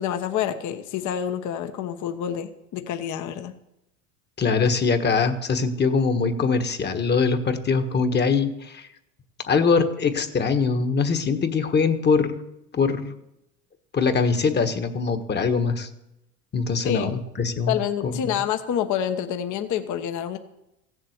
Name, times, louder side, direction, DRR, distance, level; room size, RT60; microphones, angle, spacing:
voice 1, 0.0-3.5 16.8-17.1 17.7-20.4, left 9 dB, 50° left, 8 dB, 1.2 m, -27 dB
voice 2, 4.4-8.9 9.5-12.4 12.7-13.1 13.9-15.9 16.5-18.3, left 5 dB, 25° left, 8 dB, 1.4 m, -23 dB
15.0 x 7.6 x 8.0 m, 0.86 s
supercardioid pair, 105°, 38 cm